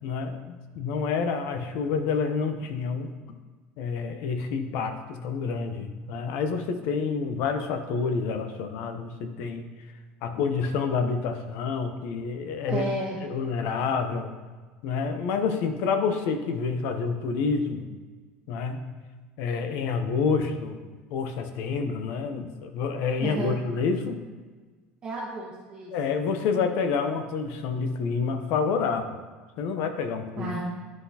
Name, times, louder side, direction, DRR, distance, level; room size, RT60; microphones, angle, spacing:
voice 1, 0.0-3.1 3.8-9.7 10.2-12.8 13.2-14.3 14.8-17.9 18.5-18.8 19.4-20.8 21.1-24.2 25.9-29.2 29.6-30.5, left 5 dB, 60° left, 7 dB, 0.7 m, -28 dB
voice 2, 12.6-13.2 23.2-23.6 25.0-25.9 30.4-30.6, right 2 dB, 25° right, -6 dB, 0.9 m, -32 dB
10.5 x 3.9 x 2.8 m, 1.4 s
cardioid pair, 165°, 4 cm